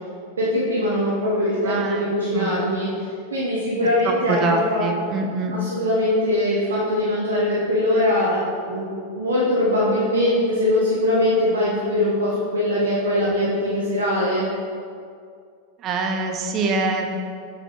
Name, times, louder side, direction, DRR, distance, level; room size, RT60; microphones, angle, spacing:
voice 1, 0.4-3.0 3.3-4.8 5.5-14.4, left 1 dB, 70° right, -6 dB, 1.1 m, -22 dB
voice 2, 1.6-2.1 2.3-2.5 4.0-5.5 15.8-17.2, right 3 dB, 30° right, 3 dB, 0.7 m, -24 dB
7.3 x 6.7 x 3.1 m, 2.3 s
figure-of-eight pair, 90°, 0 cm